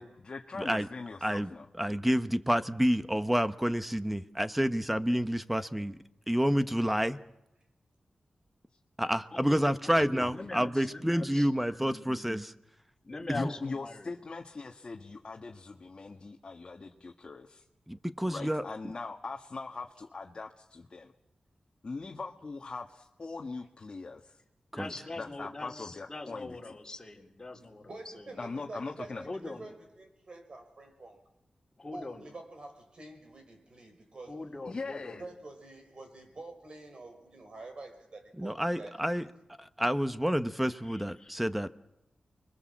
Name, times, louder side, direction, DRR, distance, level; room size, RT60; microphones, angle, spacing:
voice 1, 0.0-1.7 10.2-10.3 13.3-17.6 18.3-21.1 21.8-24.4 25.2-26.8 28.4-29.3 34.7-35.2, left 3 dB, 45° left, 2 dB, 1.6 m, -41 dB
voice 2, 0.6-0.9 1.2-1.5 1.8-6.0 6.3-7.2 9.0-12.5 13.3-13.5 17.9-18.6 24.7-24.9 38.4-39.2 39.6-41.7, equal, 5° right, 11 dB, 1.1 m, -29 dB
voice 3, 9.8-12.3 13.0-14.1 24.7-28.3 29.2-29.7 31.8-32.2 34.3-35.3 40.9-41.4, left 2 dB, 25° left, -1 dB, 4.4 m, -42 dB
voice 4, 27.8-31.2 31.9-34.4 35.2-38.9 39.2-39.3, right 2 dB, 50° right, 5 dB, 5.8 m, -47 dB
29.5 x 22.5 x 7.5 m, 0.92 s
wide cardioid pair, 95°, 2 cm